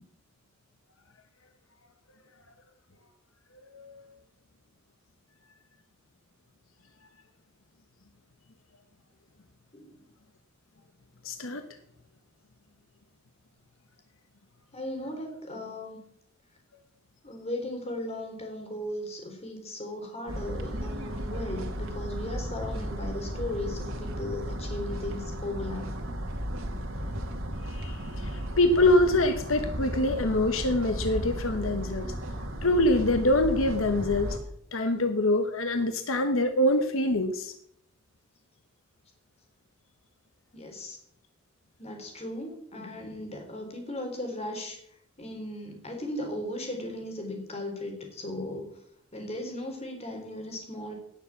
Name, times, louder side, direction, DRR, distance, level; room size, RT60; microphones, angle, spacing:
voice 1, 11.2-11.6 27.7-32.1 32.6-34.4 34.7-37.5, left 1 dB, 80° left, 7 dB, 1.2 m, -25 dB
voice 2, 14.7-16.0 17.2-25.9 40.5-41.0 41.8-44.8 45.2-48.7 49.1-50.9, left 1 dB, 30° left, 2 dB, 3.9 m, -37 dB
sound 1, 20.3-34.4, equal, 85° right, 2.4 m, -35 dB
17.5 x 7.2 x 7.2 m, 0.72 s
head